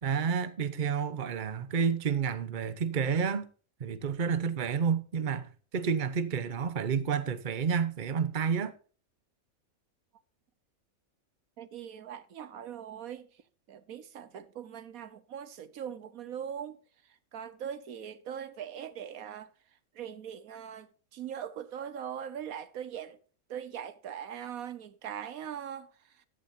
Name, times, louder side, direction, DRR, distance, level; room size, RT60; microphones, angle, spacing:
voice 1, 0.0-3.5 3.8-8.7, right 6 dB, 40° right, 1.0 m, -30 dB
voice 2, 11.6-13.4 13.7-16.8 17.0-19.5 19.9-23.2 23.5-26.3, right 9 dB, 80° right, 1.3 m, -41 dB
14.5 x 11.5 x 2.7 m
omnidirectional pair, 1.5 m